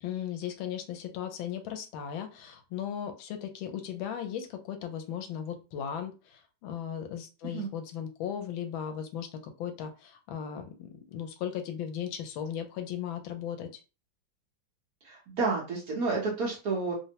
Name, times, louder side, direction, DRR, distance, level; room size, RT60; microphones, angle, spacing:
voice 1, 0.0-13.8, left 9 dB, 85° left, 6 dB, 1.4 m, -37 dB
voice 2, 15.0-16.9, right 4 dB, 55° right, -2 dB, 1.1 m, -30 dB
3.4 x 2.0 x 2.8 m, 0.31 s
omnidirectional pair, 2.1 m